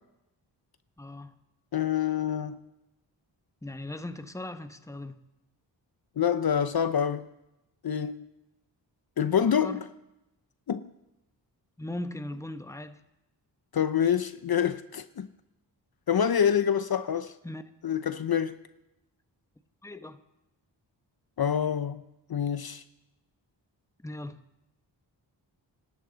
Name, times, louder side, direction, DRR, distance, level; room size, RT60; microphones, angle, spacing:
voice 1, 1.0-1.3 3.6-5.2 9.4-9.8 11.8-13.0 17.4-17.6 19.8-20.2 24.0-24.4, left 1 dB, 5° left, 1.1 m, -38 dB
voice 2, 1.7-2.6 6.2-7.3 7.8-8.3 9.2-9.8 10.7-10.9 13.7-15.3 16.1-17.3 17.8-18.6 21.4-22.0 22.3-22.8, left 8 dB, 55° left, 0.7 m, -26 dB
25.0 x 12.0 x 4.0 m
cardioid pair, 50°, 45 cm